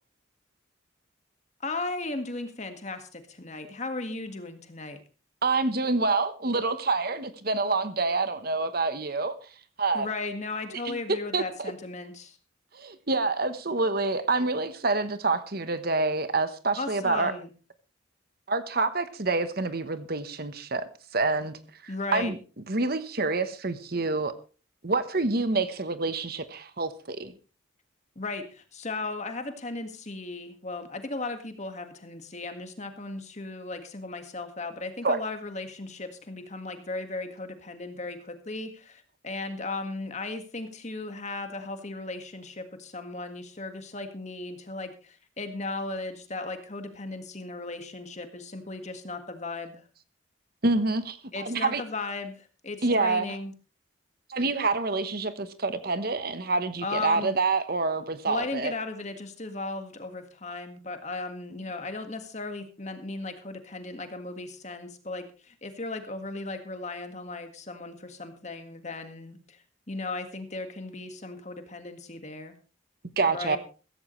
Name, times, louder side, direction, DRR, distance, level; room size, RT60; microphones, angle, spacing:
voice 1, 1.6-5.0 9.9-12.4 16.8-17.5 21.9-22.3 28.2-49.8 51.3-53.5 56.8-57.3 58.3-69.6 69.9-72.5 73.3-73.6, left 3 dB, 35° left, 7 dB, 1.8 m, -36 dB
voice 2, 5.4-9.5 9.8-10.1 10.8-11.7 12.7-17.3 18.5-22.4 22.7-24.3 24.8-27.3 35.0-35.2 50.6-51.8 52.8-53.3 54.3-58.7 73.2-73.6, right 3 dB, 50° right, 11 dB, 1.1 m, -27 dB
15.5 x 15.0 x 3.2 m, 0.35 s
head